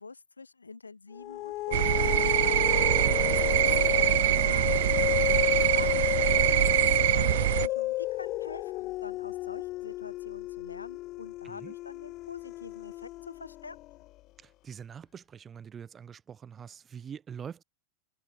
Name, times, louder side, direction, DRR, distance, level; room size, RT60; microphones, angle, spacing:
voice 1, 0.0-2.8 3.7-13.8, left 4 dB, 80° left, 5.5 m, -46 dB
sound 1, 1.1-14.0, left 17 dB, 35° left, 1.3 m, -32 dB
sound 2, 1.7-7.7, right 14 dB, 55° right, 0.7 m, -24 dB
voice 2, 3.0-3.3 11.4-11.7 14.4-17.6, right 7 dB, 20° right, 5.3 m, -44 dB
figure-of-eight pair, 90°, 0 cm